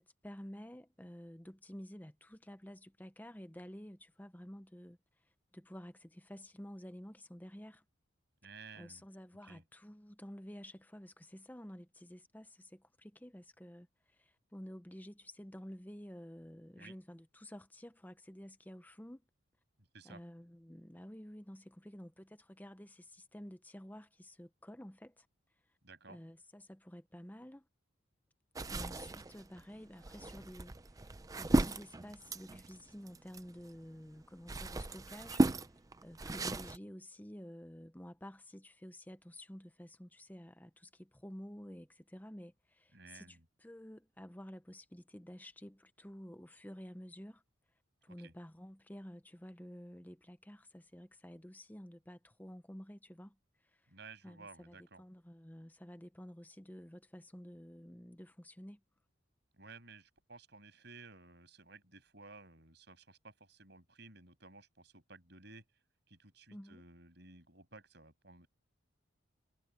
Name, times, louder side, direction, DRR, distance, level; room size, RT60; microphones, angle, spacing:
voice 1, 0.2-5.0 5.5-7.8 8.7-19.2 20.0-25.3 26.1-27.7 28.7-35.4 36.0-47.4 48.0-53.4 53.7-53.8 54.2-58.8 66.5-66.8, equal, 10° left, 0.8 m, -51 dB
voice 2, 8.4-9.0 9.4-9.6 16.7-17.0 19.8-20.2 25.8-26.2 42.9-43.4 48.0-48.3 53.9-55.0 59.5-65.6 66.1-68.5, right 3 dB, 55° right, 8.0 m, -55 dB
sound 1, 28.6-33.8 34.2-36.8, right 2 dB, 15° right, 0.5 m, -35 dB
head